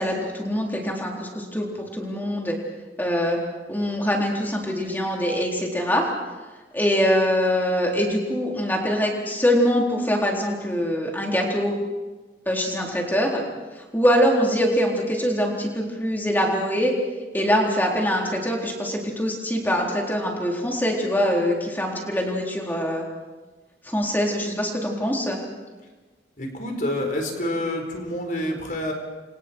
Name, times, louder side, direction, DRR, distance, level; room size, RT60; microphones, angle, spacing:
voice 1, 0.0-2.6 3.0-3.4 3.7-6.1 6.7-11.7 12.5-13.4 13.7-16.9 17.3-23.1 23.8-25.4, equal, 10° left, -1 dB, 3.9 m, -23 dB
voice 2, 26.4-28.9, left 1 dB, 50° left, 3 dB, 4.6 m, -28 dB
30.0 x 26.0 x 4.6 m, 1.3 s
head